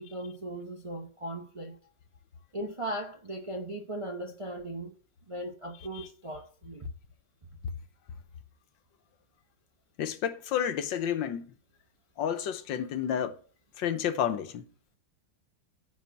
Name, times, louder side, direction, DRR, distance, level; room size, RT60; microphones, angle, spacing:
voice 1, 0.0-1.8 2.5-4.9 5.3-6.9, right 1 dB, 35° right, 0.5 m, -38 dB
voice 2, 10.0-11.5 12.2-13.4 13.8-14.7, left 9 dB, 85° left, 1.6 m, -30 dB
9.8 x 4.2 x 7.2 m
omnidirectional pair, 2.0 m